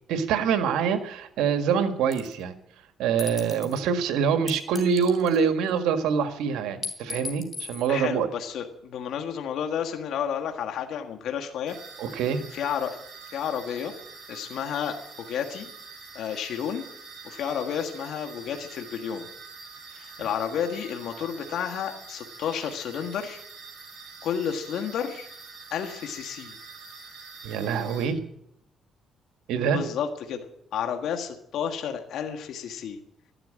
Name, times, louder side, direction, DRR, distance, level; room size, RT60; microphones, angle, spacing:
voice 1, 0.1-2.6 3.0-8.3 12.0-12.4 27.4-28.2 29.5-29.8, right 6 dB, 90° right, 8 dB, 1.7 m, -25 dB
sound 1, 2.1-2.4 3.2-3.8 4.5-5.7 6.8-7.9, left 4 dB, 35° left, 3.5 m, -37 dB
voice 2, 7.9-11.8 12.5-13.0 13.3-13.9 14.3-15.0 15.3-15.7 16.1-16.8 17.2-19.3 19.9-23.4 24.2-25.3 25.7-26.6 29.7-33.0, left 8 dB, 75° left, 3 dB, 1.6 m, -31 dB
sound 2, 11.7-28.1, right 4 dB, 60° right, 5.6 m, -45 dB
13.0 x 12.0 x 8.8 m, 0.76 s
cardioid pair, 90°, 0 cm